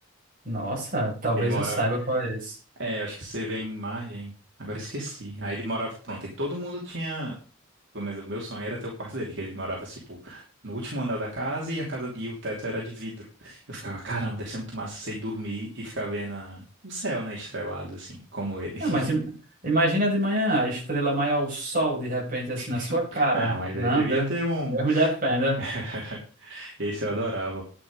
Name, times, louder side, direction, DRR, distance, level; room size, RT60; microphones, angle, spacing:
voice 1, 0.5-2.6 18.8-19.3 19.6-24.3 24.7-25.6, right 1 dB, 40° right, -3 dB, 7.1 m, -25 dB
voice 2, 1.4-1.8 2.8-4.3 4.6-7.3 7.9-19.0 22.6-25.1 25.6-27.6, right 1 dB, 60° right, -3 dB, 3.1 m, -33 dB
11.0 x 9.5 x 5.2 m, 0.37 s
head